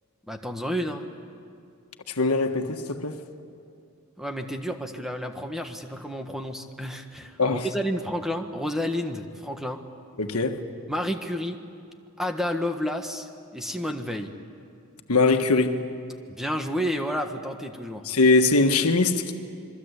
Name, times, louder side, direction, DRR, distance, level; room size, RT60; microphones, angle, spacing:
voice 1, 0.3-1.1 4.2-9.8 10.9-11.6 12.2-14.3 16.3-18.1, equal, ahead, 1.4 m, -30 dB
voice 2, 2.1-3.2 7.4-7.7 10.2-10.6 15.1-15.8 18.1-19.3, left 3 dB, 85° left, 1.6 m, -21 dB
27.0 x 23.0 x 8.3 m
head